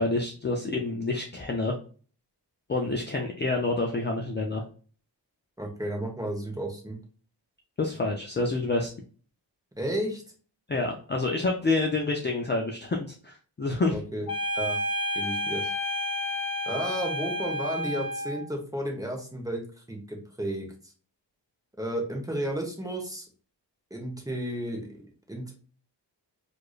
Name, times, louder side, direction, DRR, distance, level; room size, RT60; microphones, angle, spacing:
voice 1, 0.0-1.8 2.7-4.6 7.8-8.9 10.7-14.0, left 2 dB, 25° left, 1 dB, 0.4 m, -28 dB
voice 2, 5.6-7.0 9.8-10.2 13.9-14.3 14.5-14.8 15.1-15.6 16.7-19.6 19.9-20.7 21.8-23.3 23.9-25.6, right 1 dB, 10° right, 1 dB, 0.9 m, -33 dB
sound 1, 14.3-18.5, left 1 dB, 55° left, 0.9 m, -30 dB
4.7 x 2.5 x 2.3 m, 0.40 s
wide cardioid pair, 130°, 43 cm